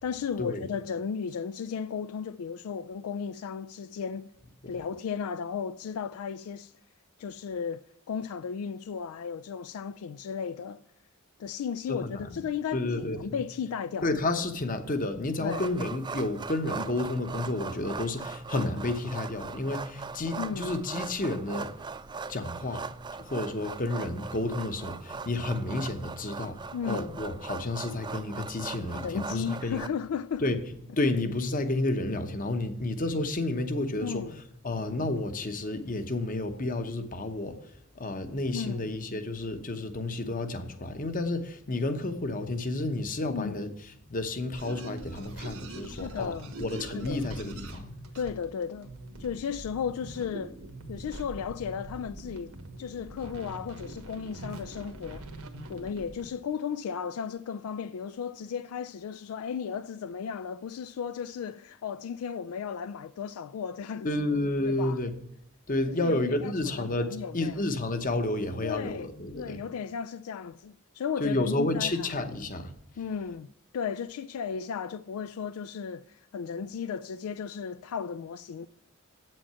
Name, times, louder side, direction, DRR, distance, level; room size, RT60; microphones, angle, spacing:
voice 1, 0.0-4.3 4.7-6.7 7.2-10.8 11.4-14.1 15.4-15.6 20.3-20.7 26.7-27.2 29.0-30.4 34.0-34.4 38.5-38.8 43.3-43.6 45.9-46.6 46.9-47.2 48.2-48.9 49.2-50.5 50.9-52.5 52.8-55.3 55.7-64.1 64.7-65.0 65.9-66.5 66.8-67.5 68.6-72.1 73.0-73.5 73.7-78.7, left 6 dB, 80° left, 0.3 m, -35 dB
voice 2, 11.9-12.4 12.7-13.4 14.0-21.7 22.3-22.9 23.2-26.6 26.8-29.8 30.4-30.6 31.0-34.2 34.6-43.7 44.1-46.3 46.6-47.9 64.0-65.1 65.7-69.6 71.2-72.7, left 2 dB, 40° left, 0.9 m, -31 dB
sound 1, 15.5-29.9, right 5 dB, 20° right, 0.3 m, -40 dB
sound 2, 44.6-56.3, right 2 dB, 80° right, 1.4 m, -43 dB
8.4 x 7.7 x 5.6 m
head